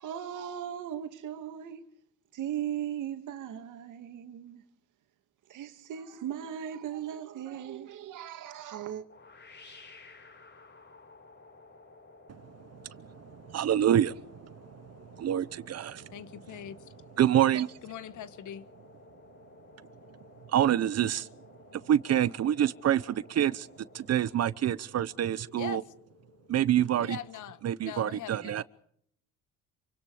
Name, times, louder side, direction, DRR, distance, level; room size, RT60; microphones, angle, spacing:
voice 1, 0.0-1.8 2.3-4.6 5.5-9.0, right 10 dB, 75° right, 2.5 m, -38 dB
sound 1, 9.1-27.9, left 2 dB, 35° left, 7.5 m, -55 dB
voice 2, 13.5-14.5 15.0-16.1 17.2-17.7 20.5-21.3 21.9-23.7 23.9-25.8 26.5-27.2 27.6-28.6, right 10 dB, 55° right, 0.9 m, -26 dB
voice 3, 16.1-16.9 17.8-18.7 25.6-25.8 27.0-28.6, left 10 dB, 70° left, 1.5 m, -42 dB
28.0 x 25.0 x 5.0 m
cardioid pair, 115°, 31 cm